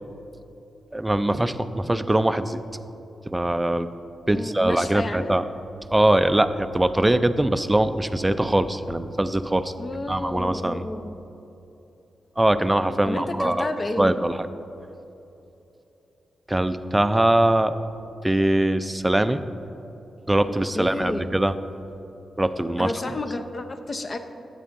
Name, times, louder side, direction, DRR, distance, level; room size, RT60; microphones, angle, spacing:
voice 1, 0.9-2.6 3.3-3.9 4.3-5.4 5.9-9.7 10.1-10.9 12.4-13.7 14.0-14.5 16.5-17.8 18.2-19.4 20.3-21.6 22.4-23.1, right 1 dB, 10° right, 11 dB, 0.4 m, -22 dB
voice 2, 4.3-5.3 9.8-11.2 13.1-14.1 20.7-21.3 22.8-24.2, left 2 dB, 35° left, 7 dB, 0.6 m, -31 dB
13.0 x 8.9 x 2.6 m, 3.0 s
cardioid pair, 90°, 0 cm